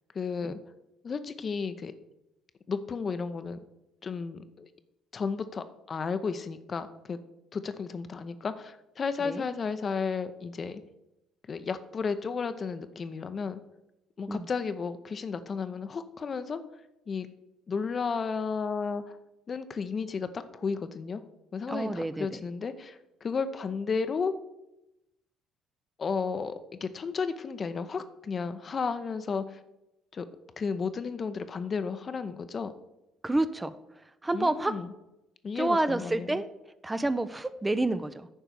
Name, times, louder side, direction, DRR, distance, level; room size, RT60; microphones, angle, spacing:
voice 1, 0.1-0.6 1.0-1.9 2.7-3.6 4.0-4.7 5.1-7.2 7.5-10.8 11.5-13.6 14.2-16.6 17.1-17.3 17.7-19.2 19.5-21.2 21.5-24.3 26.0-26.5 26.8-29.6 30.1-30.3 30.6-32.7 34.3-34.9 35.4-36.4, left 5 dB, 40° left, 10 dB, 0.7 m, -33 dB
voice 2, 21.7-22.4 33.2-33.7 34.2-34.8 35.6-36.5 36.8-38.3, right 2 dB, 15° right, 11 dB, 0.6 m, -29 dB
10.0 x 4.5 x 6.8 m, 0.92 s
hypercardioid pair, 50°, 0 cm